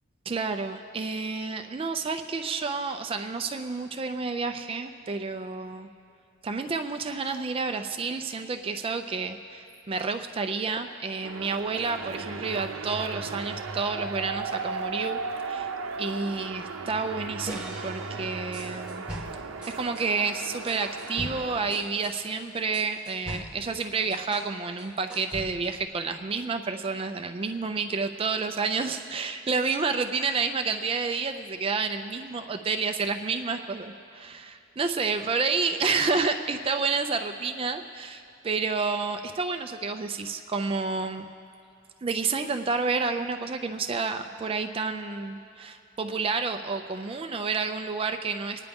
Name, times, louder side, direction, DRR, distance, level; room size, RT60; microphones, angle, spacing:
voice 1, 0.3-5.9 6.4-15.2 15.4-15.7 16.0-19.1 19.7-41.2 42.0-48.6, right 4 dB, 25° right, 7 dB, 0.4 m, -30 dB
sound 1, 11.2-21.8, right 4 dB, 85° right, 0.7 m, -36 dB
sound 2, 17.5-20.1 20.7-24.5 24.8-25.8, equal, 5° right, 1.3 m, -41 dB
24.5 x 9.9 x 3.5 m, 2.6 s
head